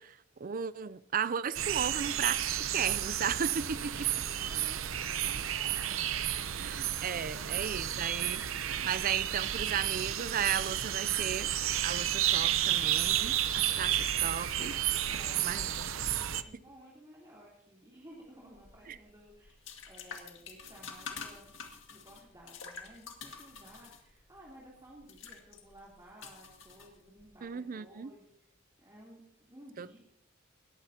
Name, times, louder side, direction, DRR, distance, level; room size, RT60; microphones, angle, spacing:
voice 1, 0.0-4.1 6.6-8.4 8.8-11.5 11.8-14.8 15.4-15.9 18.9-19.0 27.4-28.1 29.8-30.0, right 7 dB, 45° right, 0.5 m, -35 dB
sound 1, 1.5-16.4, right 11 dB, 90° right, 0.7 m, -32 dB
voice 2, 4.4-5.9 15.1-21.5 21.9-28.5 28.8-30.0, right 1 dB, 20° right, 3.3 m, -55 dB
sound 2, 18.5-27.4, left 5 dB, 70° left, 2.1 m, -48 dB
19.5 x 14.5 x 2.9 m
head